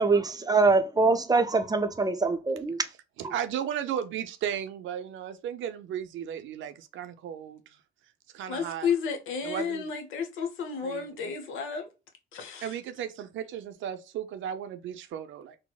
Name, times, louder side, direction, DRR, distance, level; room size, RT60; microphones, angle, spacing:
voice 1, 0.0-2.8 3.2-3.3, right 3 dB, 20° right, 0.5 m, -24 dB
voice 2, 3.2-7.6 8.3-8.9 9.4-9.9 10.8-11.0 12.6-15.6, right 9 dB, 75° right, 0.5 m, -35 dB
voice 3, 8.5-11.9 12.3-12.7, left 6 dB, 80° left, 0.8 m, -32 dB
4.0 x 2.0 x 2.2 m
supercardioid pair, 70°, 20 cm